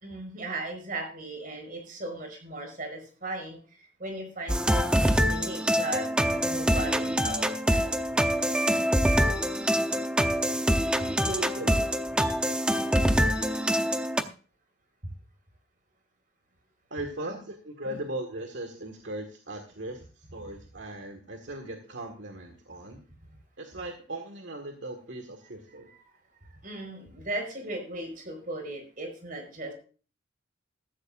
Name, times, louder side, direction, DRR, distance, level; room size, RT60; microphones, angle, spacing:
voice 1, 0.0-7.9 17.2-17.4 17.8-18.0 25.7-26.0 26.6-29.7, right 2 dB, 45° right, 5 dB, 4.6 m, -37 dB
sound 1, 4.5-14.2, equal, 5° right, 0.7 m, -25 dB
voice 2, 11.3-12.0 16.9-23.0 23.6-25.9, right 1 dB, 70° right, 4 dB, 1.8 m, -38 dB
14.5 x 14.5 x 2.5 m, 0.38 s
head